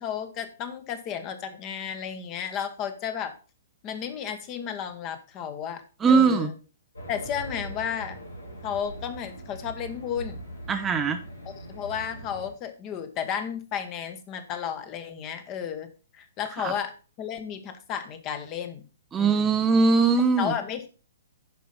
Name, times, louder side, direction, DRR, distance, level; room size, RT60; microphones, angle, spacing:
voice 1, 0.0-3.3 3.8-6.5 7.1-8.2 8.6-10.4 11.4-15.9 16.1-18.8 19.2-19.7 20.4-20.9, left 8 dB, 30° left, 9 dB, 1.4 m, -33 dB
voice 2, 6.0-6.5 10.7-11.2 16.6-16.7 19.1-20.5, right 4 dB, 15° right, 7 dB, 0.7 m, -21 dB
Race car auto racing, 7.0-12.5, right 1 dB, 75° left, 2.9 m, -41 dB
10.0 x 5.4 x 5.4 m, 0.35 s
figure-of-eight pair, 120°, 0 cm